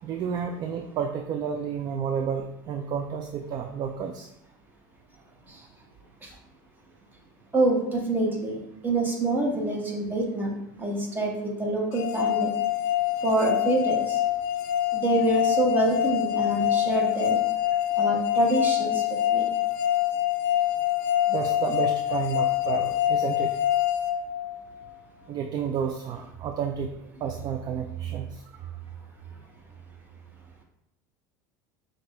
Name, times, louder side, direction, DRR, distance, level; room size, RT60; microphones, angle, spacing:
voice 1, 0.0-4.3 21.3-23.6 25.3-26.9 27.2-28.4, right 7 dB, 40° right, 4 dB, 0.4 m, -31 dB
voice 2, 7.5-8.6 8.8-12.5 13.2-14.2 14.9-17.4 18.0-19.0 19.3-19.5, right 2 dB, 20° right, -1 dB, 1.2 m, -26 dB
sound 1, 11.9-24.9, left 12 dB, 80° left, 0.5 m, -25 dB
5.9 x 2.5 x 3.2 m, 0.83 s
supercardioid pair, 110°, 10 cm